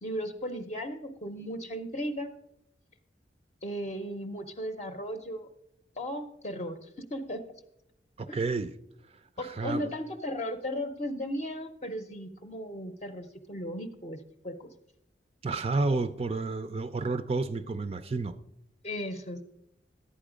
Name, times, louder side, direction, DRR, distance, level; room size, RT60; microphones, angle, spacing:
voice 1, 0.0-2.3 3.6-5.5 6.0-7.4 8.3-8.4 9.4-14.2 14.4-14.5 18.8-19.4, equal, 35° left, 0.7 m, -36 dB
voice 2, 8.2-8.7 9.4-9.9 15.4-18.4, right 3 dB, 35° right, 0.4 m, -30 dB
11.5 x 8.8 x 5.0 m
head